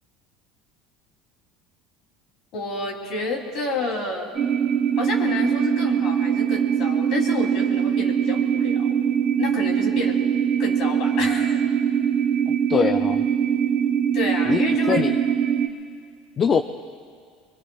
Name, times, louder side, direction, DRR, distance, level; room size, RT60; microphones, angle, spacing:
voice 1, 2.5-4.3 4.9-8.9 9.4-10.2 10.6-11.6 14.1-15.0, left 3 dB, 55° left, 0 dB, 3.3 m, -29 dB
sound 1, 4.3-15.7, right 8 dB, 30° right, 1.0 m, -22 dB
voice 2, 12.7-13.2 14.5-14.6 14.9-15.2 16.4-16.6, left 6 dB, 30° left, 8 dB, 0.4 m, -21 dB
24.5 x 23.0 x 2.4 m, 2.1 s
cardioid pair, 140°, 0 cm